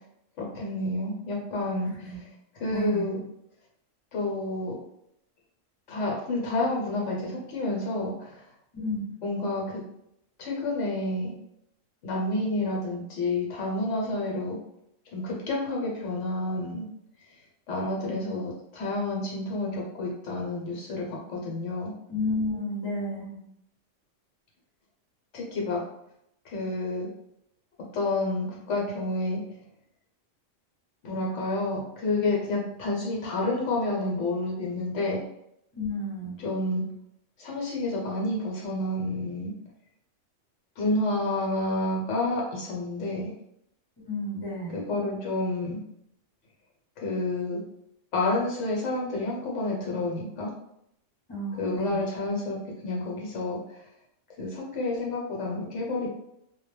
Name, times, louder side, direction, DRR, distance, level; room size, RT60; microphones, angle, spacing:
voice 1, 0.4-2.1 2.6-3.2 4.1-4.7 5.9-8.4 9.2-9.8 10.4-11.3 12.0-14.6 15.1-16.9 17.7-21.9 25.3-25.8 26.4-27.1 27.9-29.4 31.0-35.2 36.4-36.8 37.4-39.5 40.8-43.3 44.7-45.8 47.0-47.6 48.1-50.5 51.6-52.6 52.8-53.6 54.4-56.1, left 2 dB, 70° left, -2 dB, 1.0 m, -29 dB
voice 2, 2.7-3.1 8.7-9.0 22.1-23.4 35.7-36.4 44.0-44.8 51.3-52.0, left 1 dB, 20° left, -5 dB, 0.7 m, -31 dB
2.2 x 2.1 x 3.1 m, 0.76 s
omnidirectional pair, 1.3 m